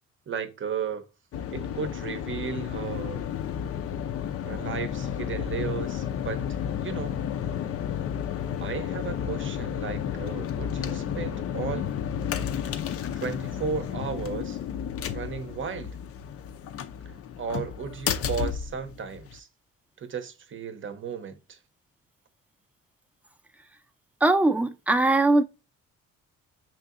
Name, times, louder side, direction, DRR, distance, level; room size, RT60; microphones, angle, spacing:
voice 1, 0.3-1.0 1.5-3.3 4.4-7.2 8.6-11.9 13.2-14.6 15.1-15.9 17.4-19.5 20.0-21.6, right 6 dB, 40° right, 0.7 m, -34 dB
sound 1, 1.3-19.4, left 8 dB, 50° left, 0.5 m, -32 dB
voice 2, 24.2-25.4, right 2 dB, 5° right, 0.5 m, -21 dB
5.6 x 2.7 x 2.5 m
cardioid pair, 90°, 30 cm